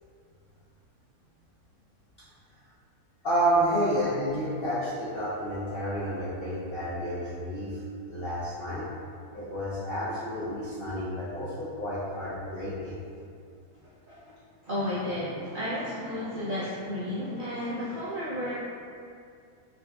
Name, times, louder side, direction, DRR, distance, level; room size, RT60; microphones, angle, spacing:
voice 1, 3.2-7.8 8.1-8.9 9.3-13.0, right 1 dB, 65° left, -9 dB, 0.5 m, -30 dB
voice 2, 14.6-18.5, left 1 dB, 75° right, -9 dB, 0.4 m, -32 dB
3.9 x 2.3 x 3.4 m, 2.4 s
omnidirectional pair, 1.7 m